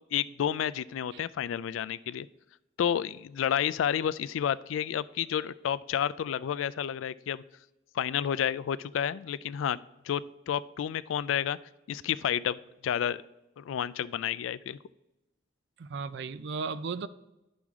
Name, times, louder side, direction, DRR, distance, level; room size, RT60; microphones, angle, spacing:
voice 1, 0.1-2.3 2.8-7.4 7.9-9.8 10.1-11.6 11.9-12.6 12.8-13.2 13.6-14.8, left 9 dB, 80° left, 16 dB, 0.3 m, -30 dB
voice 2, 15.8-17.1, right 5 dB, 60° right, 14 dB, 0.4 m, -35 dB
10.0 x 6.1 x 3.6 m, 0.95 s
head